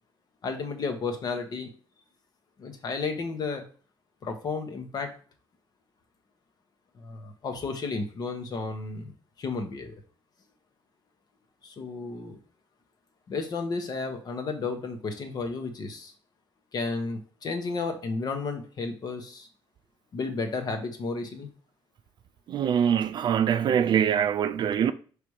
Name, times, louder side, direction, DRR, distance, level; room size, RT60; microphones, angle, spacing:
voice 1, 0.4-1.7 2.6-3.6 4.2-5.1 7.0-9.1 9.4-10.0 11.6-12.4 13.3-16.1 16.7-19.5 20.1-21.5, left 4 dB, 45° left, 1.1 m, -32 dB
voice 2, 22.5-24.9, right 8 dB, 55° right, 0.4 m, -24 dB
5.8 x 3.4 x 4.8 m
cardioid pair, 155°, 9 cm